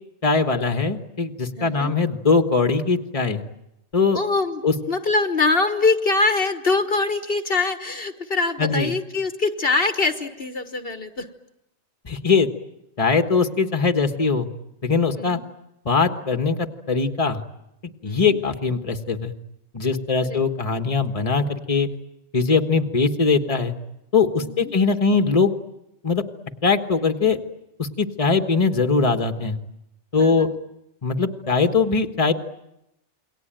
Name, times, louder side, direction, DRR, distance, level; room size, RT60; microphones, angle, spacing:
voice 1, 0.2-3.4 3.9-4.2 4.6-4.7 8.6-8.9 12.0-12.5 13.0-14.5 14.8-15.4 15.8-17.4 18.0-19.3 19.7-21.9 22.3-23.7 24.1-25.5 26.0-26.2 26.6-27.4 27.8-29.6 30.1-30.5 31.0-32.3, left 4 dB, 30° left, 7 dB, 1.6 m, -21 dB
voice 2, 1.6-1.9 4.1-11.3 15.1-15.4 18.0-18.4 20.2-20.4 24.4-24.7 30.2-30.5, left 3 dB, 55° left, 9 dB, 1.6 m, -23 dB
28.5 x 23.0 x 9.1 m, 0.87 s
omnidirectional pair, 1.2 m